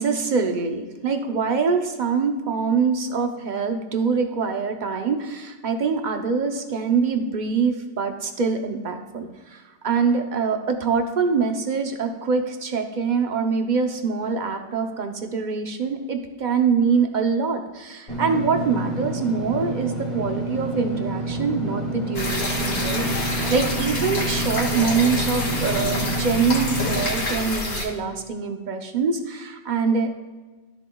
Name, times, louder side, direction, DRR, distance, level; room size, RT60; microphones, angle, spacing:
voice 1, 0.0-30.1, right 5 dB, 45° right, 5 dB, 0.8 m, -24 dB
Engine / Mechanisms, 18.1-27.0, right 2 dB, 40° left, 2.0 m, -29 dB
sound 1, 22.1-27.8, left 2 dB, 65° left, 2.1 m, -27 dB
13.0 x 7.0 x 2.3 m, 1.3 s
omnidirectional pair, 1.2 m